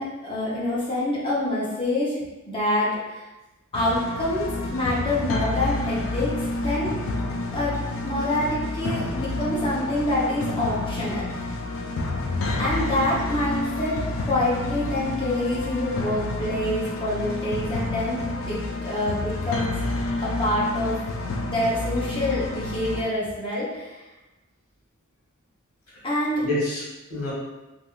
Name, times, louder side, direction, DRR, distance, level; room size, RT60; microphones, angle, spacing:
voice 1, 0.0-2.2 2.5-3.2 3.7-6.3 6.6-7.0 7.5-7.8 8.0-11.4 12.6-19.8 20.2-21.0 21.5-24.0 26.0-26.4, left 1 dB, 25° left, -7 dB, 0.9 m, -26 dB
sound 1, 3.7-23.0, left 2 dB, 60° left, 0.4 m, -29 dB
voice 2, 26.4-27.3, left 1 dB, 80° left, -6 dB, 1.4 m, -29 dB
3.4 x 2.5 x 2.4 m, 1.1 s
head